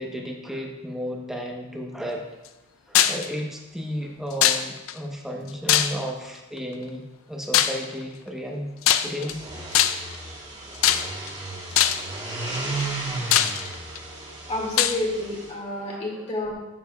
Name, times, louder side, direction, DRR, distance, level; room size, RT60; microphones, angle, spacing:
voice 1, 0.0-2.3 2.9-8.7 9.0-9.4 12.2-13.0 13.5-13.8 15.7-16.3, equal, ahead, 0 dB, 0.9 m, -34 dB
sound 1, 2.9-3.3 4.4-4.9 5.7-6.2 7.5-7.8 8.8-9.3 9.7-10.1 10.8-11.3 11.7-12.1 12.8-12.9 13.3-14.0 14.8-15.0, left 11 dB, 85° left, 0.4 m, -20 dB
sound 2, 9.2-15.5, right 2 dB, 30° right, 2.2 m, -34 dB
voice 2, 14.5-16.5, left 1 dB, 35° left, -3 dB, 2.1 m, -29 dB
10.5 x 7.2 x 2.3 m, 1.0 s
head